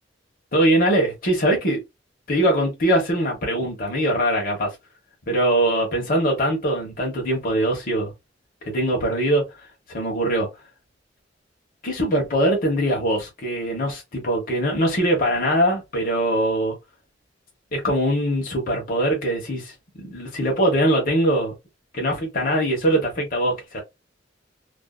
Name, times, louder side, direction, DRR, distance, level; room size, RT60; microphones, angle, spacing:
voice 1, 0.5-1.8 2.3-4.8 5.3-8.1 8.6-9.6 9.9-10.5 11.8-16.8 17.7-21.5 21.9-23.8, right 1 dB, 50° left, 1.0 m, -22 dB
2.6 x 2.5 x 2.2 m
head